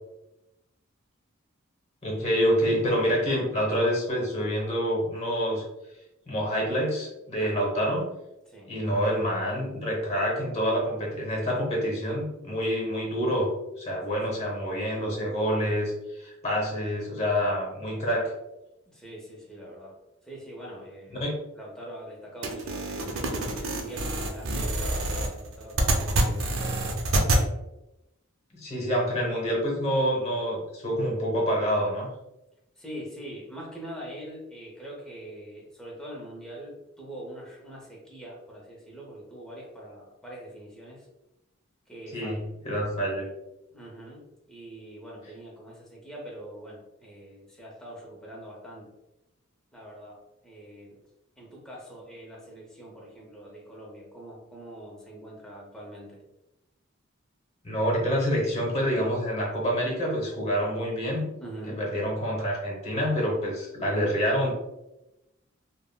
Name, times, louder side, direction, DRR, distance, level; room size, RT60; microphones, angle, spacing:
voice 1, 2.0-5.6 6.3-8.0 8.7-13.5 13.8-18.3 21.2-21.3 28.6-32.1 42.1-43.3 57.6-61.2 61.7-64.5, equal, 30° left, -2 dB, 0.9 m, -27 dB
voice 2, 7.4-7.8 8.5-8.7 14.1-14.9 18.9-20.0 20.2-21.2 21.6-26.8 32.8-41.1 41.9-42.4 43.7-48.9 49.7-51.0 51.4-56.2 61.4-61.8, right 1 dB, 5° left, -4 dB, 0.7 m, -43 dB
sound 1, 22.4-27.4, right 1 dB, 70° right, 0.5 m, -26 dB
3.4 x 2.1 x 2.2 m, 0.92 s
head